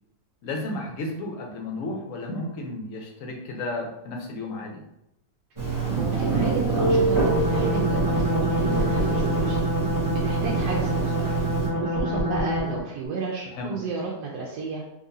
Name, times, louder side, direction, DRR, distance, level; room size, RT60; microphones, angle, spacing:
voice 1, 0.4-4.8 13.5-13.7, left 2 dB, 60° left, 1 dB, 1.0 m, -33 dB
Telephone, 5.6-11.7, right 4 dB, 15° right, 1.0 m, -25 dB
voice 2, 6.0-9.7 10.2-11.1 11.8-14.8, right 4 dB, 80° right, -3 dB, 1.1 m, -32 dB
sound 1, 7.2-12.9, left 1 dB, 40° right, 1.1 m, -26 dB
4.0 x 2.6 x 2.6 m, 0.85 s
omnidirectional pair, 1.7 m